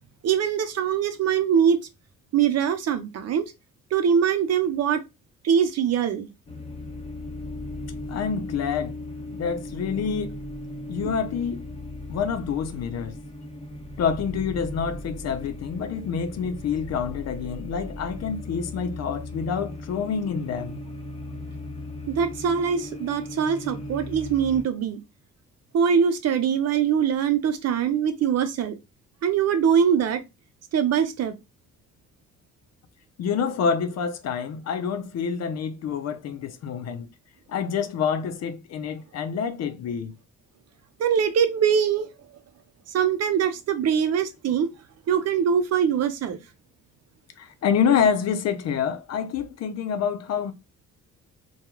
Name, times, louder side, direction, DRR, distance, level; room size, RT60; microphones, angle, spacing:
voice 1, 0.2-1.8 2.3-3.5 3.9-5.0 5.4-6.3 11.0-11.1 22.1-25.0 25.7-28.7 29.2-30.2 30.7-31.3 41.0-42.1 42.9-44.7 45.1-46.4, right 7 dB, 55° right, 0.6 m, -22 dB
sound 1, 6.5-24.6, left 1 dB, 20° left, 0.7 m, -37 dB
voice 2, 8.1-8.9 9.4-10.4 10.9-11.6 12.1-13.1 14.0-20.8 33.2-37.1 37.5-40.1 47.4-50.5, left 7 dB, 60° left, 0.5 m, -27 dB
2.3 x 2.2 x 3.0 m
cardioid pair, 90°, 30 cm